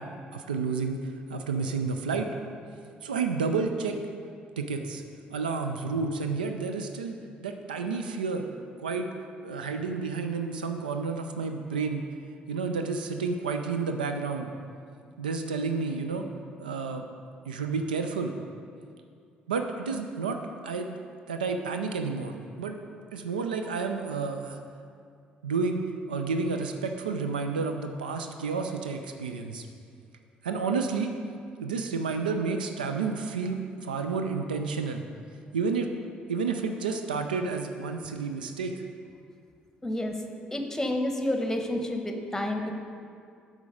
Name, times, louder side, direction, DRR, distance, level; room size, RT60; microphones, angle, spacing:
voice 1, 0.3-1.0 1.3-2.3 3.0-4.0 4.6-5.0 5.3-7.2 7.4-8.4 8.8-9.1 9.4-12.0 12.5-14.5 15.2-16.3 16.6-17.0 17.5-18.3 19.5-21.0 21.3-22.8 23.1-24.6 25.4-29.7 30.4-31.1 31.6-35.0 35.5-35.9 36.3-38.7 42.3-42.7, right 4 dB, 85° right, 5 dB, 0.4 m, -30 dB
voice 2, 39.8-40.2 40.5-42.7, left 1 dB, 10° left, 4 dB, 1.0 m, -29 dB
8.2 x 4.9 x 4.9 m, 2.3 s
figure-of-eight pair, 45°, 5 cm